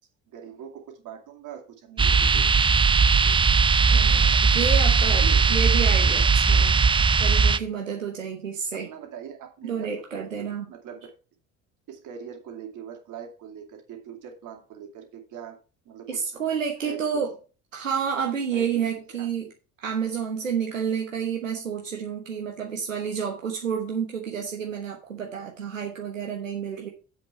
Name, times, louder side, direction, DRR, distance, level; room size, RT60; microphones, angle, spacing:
voice 1, 0.3-2.8 4.1-4.4 5.2-5.5 8.7-11.1 11.9-15.6 15.8-16.5 16.8-17.2 18.5-19.5, right 8 dB, 50° right, 3 dB, 2.7 m, -42 dB
sound 1, 2.0-7.6, right 5 dB, 15° right, 0.5 m, -19 dB
voice 2, 3.9-5.2 5.5-6.8 7.2-8.9 9.6-10.7 16.1-17.3 17.7-19.5 19.8-26.9, right 7 dB, 90° right, 1 dB, 1.2 m, -30 dB
7.9 x 6.3 x 5.9 m, 0.34 s
figure-of-eight pair, 55°, 38 cm